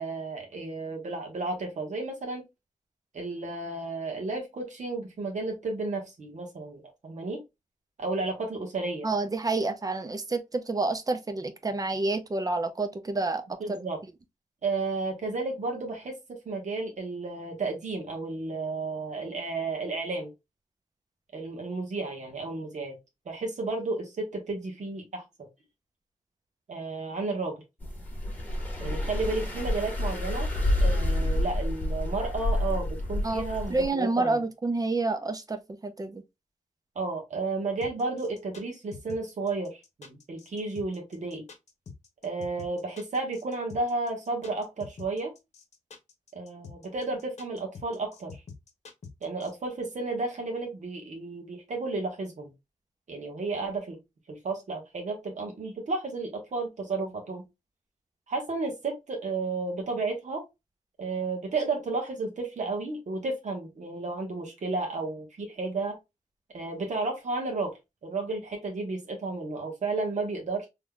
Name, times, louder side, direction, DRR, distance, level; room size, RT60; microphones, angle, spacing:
voice 1, 0.0-2.4 3.1-7.4 8.0-9.1 13.6-14.0 14.6-16.1 16.4-20.3 21.3-22.9 23.2-25.5 26.7-27.6 28.8-30.5 30.8-34.4 36.9-41.4 42.2-45.3 46.3-48.4 49.2-52.5 53.1-54.0 54.3-57.4 58.3-60.4 61.0-65.9 66.5-67.7 68.0-70.7, right 3 dB, 65° right, 1.2 m, -32 dB
voice 2, 9.0-13.4 13.7-13.8 33.2-36.2, right 3 dB, 30° right, 0.5 m, -29 dB
sound 1, 27.8-33.9, left 1 dB, 10° left, 1.5 m, -29 dB
sound 2, 37.8-49.5, left 5 dB, 55° left, 0.9 m, -46 dB
3.7 x 3.1 x 2.3 m
wide cardioid pair, 130°, 13 cm